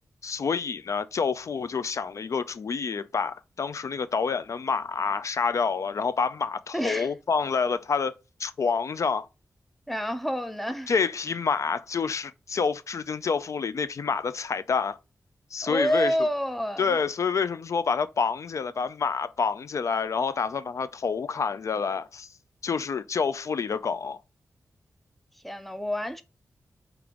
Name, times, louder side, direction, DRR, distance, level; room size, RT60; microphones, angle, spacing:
voice 1, 0.2-8.1 8.4-9.3 10.9-15.0 15.5-16.1 16.8-22.3 22.6-24.2, left 5 dB, 60° left, 0.3 m, -28 dB
voice 2, 6.7-7.1 9.9-10.9 15.6-17.0 25.4-26.2, equal, ahead, 0.5 m, -28 dB
5.0 x 2.9 x 3.5 m
wide cardioid pair, 135°, 6 cm